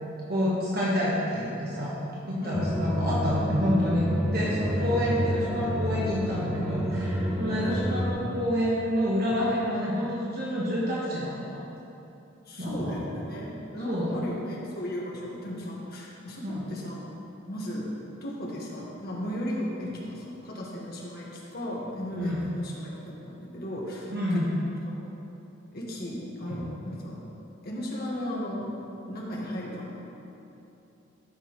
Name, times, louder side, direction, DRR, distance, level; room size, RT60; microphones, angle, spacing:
voice 1, 0.3-1.9 2.2-11.6 12.6-13.0 13.8-14.1 16.4-16.7 22.1-22.4 24.1-24.5 26.5-26.6, equal, 50° right, -7 dB, 1.3 m, -28 dB
voice 2, 2.4-2.7 4.7-5.2 7.5-7.8 12.4-16.4 16.7-17.0 17.5-17.9 18.2-24.1 24.9-25.0 25.7-27.2 27.6-28.7 29.1-30.0, equal, 50° left, -4 dB, 1.6 m, -36 dB
sound 1, 2.5-8.1, equal, 5° right, 1.0 m, -29 dB
13.0 x 6.2 x 3.2 m, 2.9 s
head